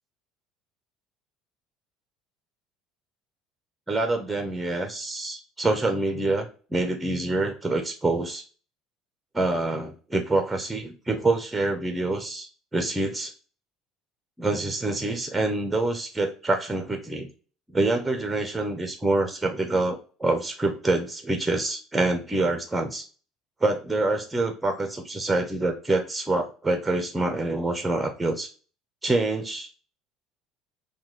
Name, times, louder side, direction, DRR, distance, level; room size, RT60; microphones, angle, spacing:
voice 1, 3.9-6.5 6.7-8.4 9.3-13.3 14.4-17.3 17.7-23.0 23.6-28.5 29.0-29.7, right 2 dB, 5° right, 5 dB, 0.8 m, -26 dB
5.6 x 2.3 x 3.2 m, 0.37 s
cardioid pair, 140°, 0 cm